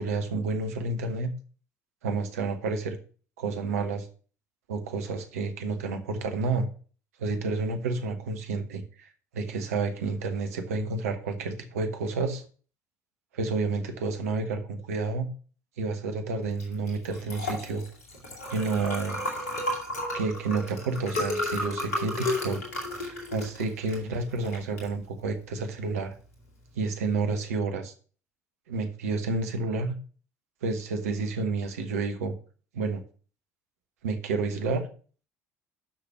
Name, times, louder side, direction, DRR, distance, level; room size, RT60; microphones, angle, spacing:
voice 1, 0.0-1.3 2.0-3.0 3.4-4.1 4.7-6.7 7.2-12.4 13.3-15.3 15.8-17.8 18.5-19.2 20.1-22.6 23.0-26.1 26.7-27.9 28.7-30.0 30.6-32.3 32.7-33.0 34.0-34.9, right 3 dB, 70° right, 7 dB, 1.2 m, -30 dB
Liquid, 16.5-26.7, left 1 dB, 75° left, 2.2 m, -34 dB
6.1 x 6.0 x 6.7 m, 0.41 s
figure-of-eight pair, 55°, 8 cm